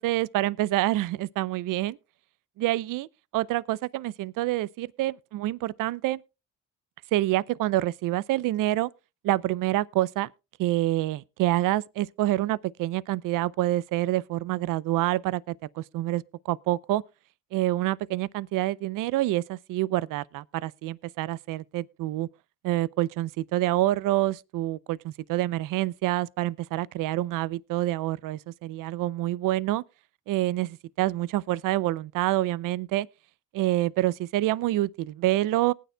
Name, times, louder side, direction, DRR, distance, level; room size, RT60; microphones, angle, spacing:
voice 1, 0.0-2.0 2.6-3.1 3.3-6.2 7.1-8.9 9.2-10.3 10.6-17.0 17.5-22.3 22.6-29.8 30.3-33.1 33.5-35.7, right 16 dB, 80° right, 0.5 m, -27 dB
19.5 x 9.3 x 2.2 m
cardioid pair, 70°, 32 cm